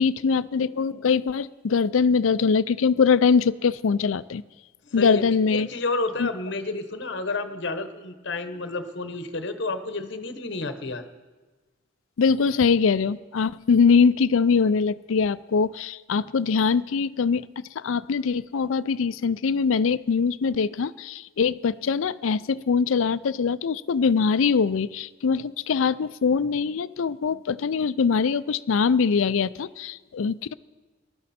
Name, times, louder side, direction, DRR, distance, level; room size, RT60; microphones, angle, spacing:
voice 1, 0.0-4.4 4.9-5.7 6.2-6.3 12.2-30.5, left 5 dB, 80° left, 17 dB, 0.4 m, -22 dB
voice 2, 4.8-5.2 5.5-11.0, left 3 dB, 60° left, 9 dB, 1.1 m, -30 dB
20.0 x 12.5 x 4.3 m, 1.3 s
head